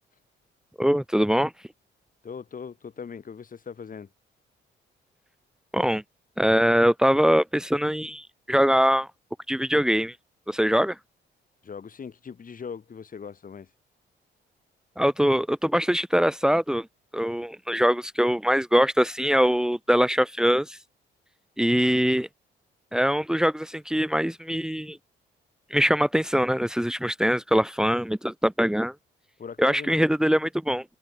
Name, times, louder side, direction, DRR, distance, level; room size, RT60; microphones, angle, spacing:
voice 1, 0.8-1.5 5.7-6.0 6.4-9.1 9.5-10.2 10.5-11.0 15.0-16.9 17.1-20.8 21.6-22.3 22.9-25.0 25.7-28.9 29.6-30.8, equal, 5° right, 2.3 m, -22 dB
voice 2, 2.2-4.1 11.6-13.7 29.4-30.0, left 6 dB, 45° left, 5.7 m, -39 dB
cardioid pair, 90°, 20 cm